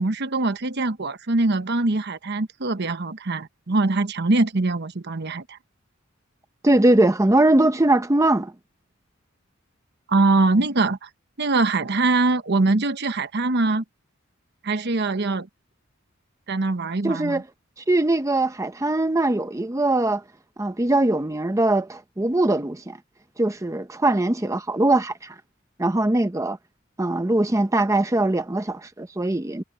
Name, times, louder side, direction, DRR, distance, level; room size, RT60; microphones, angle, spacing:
voice 1, 0.0-5.6 10.1-11.1 11.4-13.8 14.6-15.5 16.5-17.4, right 2 dB, 55° right, 1.0 m, -23 dB
voice 2, 6.6-8.5 17.0-17.4 17.9-20.2 20.6-23.0 23.4-25.3 25.8-26.6 27.0-29.6, right 2 dB, 15° right, 0.7 m, -21 dB
head